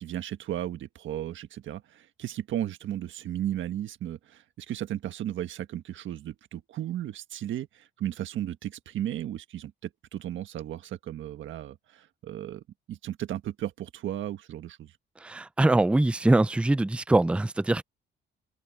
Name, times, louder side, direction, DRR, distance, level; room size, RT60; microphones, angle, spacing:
voice 1, 0.0-14.9, right 12 dB, 75° right, 1.6 m, -35 dB
voice 2, 15.2-17.8, right 2 dB, 5° right, 0.4 m, -23 dB
open air
cardioid pair, 90°, 20 cm